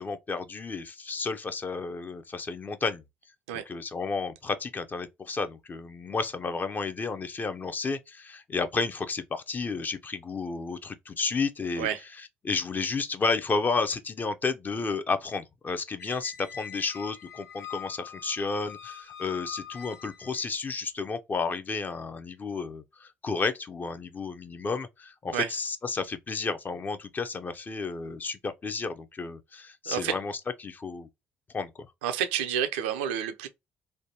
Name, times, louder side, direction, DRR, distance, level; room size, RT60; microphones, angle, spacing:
voice 1, 0.0-3.0 3.7-11.9 12.4-30.3 30.6-31.1 31.5-31.7, left 4 dB, 35° left, 0.5 m, -32 dB
Squeak, 16.0-20.5, left 8 dB, 65° left, 0.8 m, -43 dB
voice 2, 29.9-30.2 32.0-33.5, right 9 dB, 85° right, 0.4 m, -29 dB
3.2 x 2.2 x 2.7 m
hypercardioid pair, 60°, 5 cm